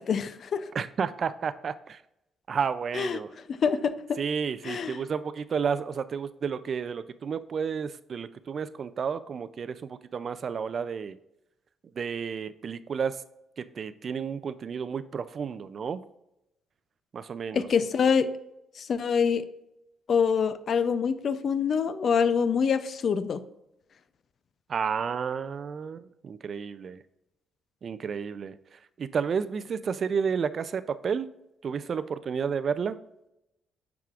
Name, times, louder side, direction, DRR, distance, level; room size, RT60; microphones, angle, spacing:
voice 1, 0.0-0.7 2.9-3.2 3.5-4.2 4.6-5.0 17.5-18.3 18.8-19.4 20.1-23.4, left 6 dB, 55° left, 13 dB, 0.4 m, -25 dB
voice 2, 0.7-2.0 2.5-3.3 4.2-11.2 12.0-13.2 13.6-16.0 17.1-17.7 24.7-27.0 27.8-31.3 31.6-33.0, right 6 dB, 50° right, 14 dB, 0.3 m, -31 dB
9.2 x 4.8 x 2.4 m, 0.86 s
cardioid pair, 90°, 0 cm